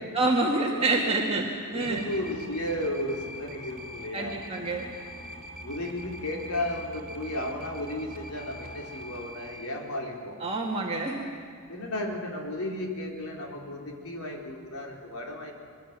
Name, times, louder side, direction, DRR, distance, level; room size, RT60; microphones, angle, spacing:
voice 1, 0.0-2.1 4.1-4.9 10.4-11.3, right 2 dB, 25° right, -1 dB, 2.1 m, -27 dB
voice 2, 1.7-4.4 5.6-10.4 11.7-15.5, left 1 dB, 75° left, 0 dB, 3.9 m, -34 dB
sound 1, 1.8-9.7, equal, 45° right, 3.2 m, -43 dB
24.0 x 22.5 x 7.5 m, 2.1 s
head